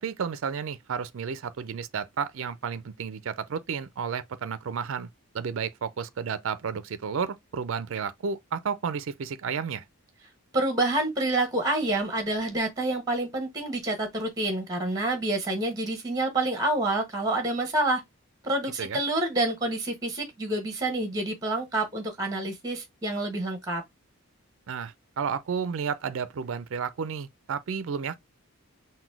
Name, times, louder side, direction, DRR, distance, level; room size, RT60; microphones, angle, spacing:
voice 1, 0.0-5.1 5.3-9.8 18.8-19.0 24.7-28.2, right 6 dB, 65° right, 0.4 m, -32 dB
voice 2, 10.5-18.0 18.4-23.8, right 2 dB, 15° right, 1.1 m, -28 dB
4.0 x 2.2 x 4.5 m
head